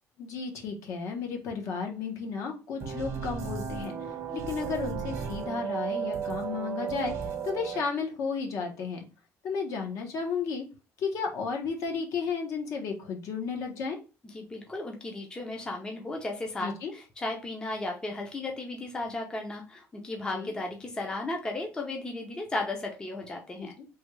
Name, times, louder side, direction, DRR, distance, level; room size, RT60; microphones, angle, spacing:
voice 1, 0.2-3.9 4.3-9.0 9.4-10.7 11.0-14.0 16.6-16.9 20.3-20.5 23.6-23.9, left 5 dB, 60° left, 2 dB, 0.9 m, -33 dB
sound 1, 2.8-7.8, right 7 dB, 55° right, 0.7 m, -34 dB
voice 2, 14.3-23.7, left 2 dB, 15° left, 1 dB, 0.6 m, -35 dB
3.3 x 2.2 x 3.1 m, 0.31 s
cardioid pair, 150°, 6 cm